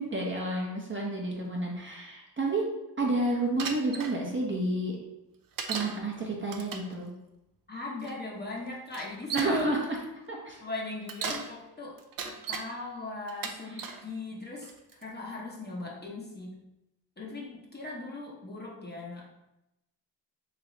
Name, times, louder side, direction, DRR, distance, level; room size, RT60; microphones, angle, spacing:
voice 1, 0.0-2.6 3.0-5.0 5.7-7.1 9.3-10.0 10.3-10.6 13.7-13.9, right 2 dB, 25° right, -2 dB, 0.8 m, -30 dB
Bicycle, 3.6-4.1 5.6-6.0 6.5-6.9 8.0-8.1 8.9-9.6 10.9-11.5 12.0-12.7 13.3-14.0 14.6-15.0, right 6 dB, 50° right, 0.5 m, -36 dB
voice 2, 7.7-9.7 10.6-14.7 15.0-16.6 17.2-19.5, left 2 dB, 20° left, -3 dB, 0.9 m, -39 dB
3.2 x 3.0 x 3.8 m, 0.92 s
cardioid pair, 85°, 44 cm